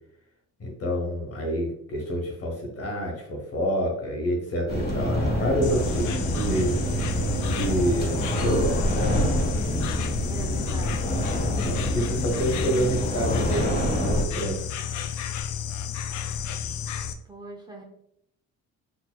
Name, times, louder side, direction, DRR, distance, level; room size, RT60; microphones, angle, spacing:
voice 1, 0.6-6.8 7.5-9.2 11.4-14.6, equal, 50° left, 1 dB, 1.5 m, -27 dB
sound 1, 4.7-14.2, equal, 30° left, 1.4 m, -27 dB
Insect, 5.6-17.1, left 8 dB, 75° left, 0.5 m, -32 dB
voice 2, 10.3-11.2 17.2-17.8, right 1 dB, 15° right, 0 dB, 0.9 m, -41 dB
4.4 x 3.8 x 2.3 m, 0.74 s
cardioid pair, 90°, 30 cm